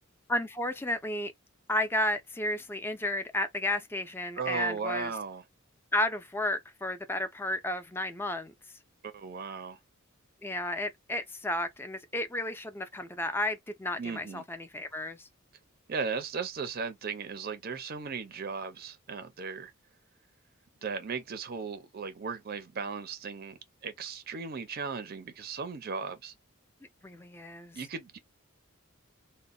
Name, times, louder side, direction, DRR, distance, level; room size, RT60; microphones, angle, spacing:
voice 1, 0.3-1.3 1.7-5.1 5.9-8.5 10.4-15.3 27.0-27.8, left 1 dB, 10° left, 0.4 m, -32 dB
voice 2, 4.4-5.4 9.0-9.8 14.0-14.4 15.9-19.7 20.8-26.3 27.7-28.2, right 5 dB, 45° right, 0.5 m, -36 dB
2.1 x 2.0 x 3.7 m
head